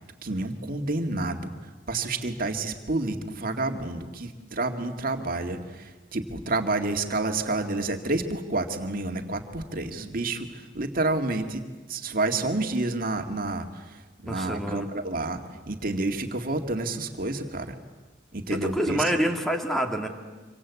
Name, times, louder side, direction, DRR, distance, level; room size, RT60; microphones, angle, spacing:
voice 1, 0.2-1.5 1.9-11.6 11.9-17.8 18.3-19.1, right 2 dB, 50° right, 5 dB, 2.1 m, -29 dB
voice 2, 14.3-14.9 18.5-20.1, equal, ahead, 4 dB, 2.3 m, -27 dB
26.0 x 24.5 x 8.4 m, 1.3 s
head